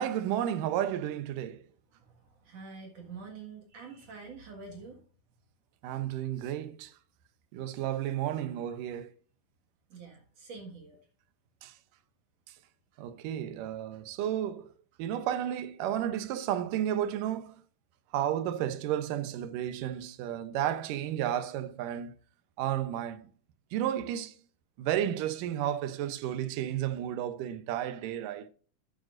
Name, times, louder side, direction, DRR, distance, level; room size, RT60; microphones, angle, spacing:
voice 1, 0.0-1.6 5.8-6.9 7.5-9.1 11.6-11.7 13.0-14.7 15.0-17.6 18.1-22.1 22.6-23.3 23.7-24.4 24.8-28.5, right 11 dB, 85° right, 2.4 m, -32 dB
voice 2, 1.9-5.0 9.9-11.0, right 4 dB, 55° right, 2.7 m, -46 dB
11.5 x 10.5 x 2.5 m
omnidirectional pair, 3.7 m